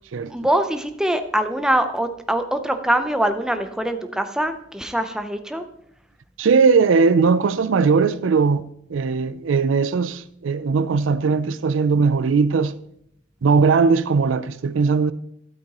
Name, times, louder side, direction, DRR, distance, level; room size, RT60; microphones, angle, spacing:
voice 1, 0.3-5.6, right 1 dB, 5° right, 0.6 m, -23 dB
voice 2, 6.4-8.6 8.9-12.8 13.4-15.1, right 5 dB, 75° right, 0.4 m, -19 dB
12.0 x 8.4 x 3.0 m
head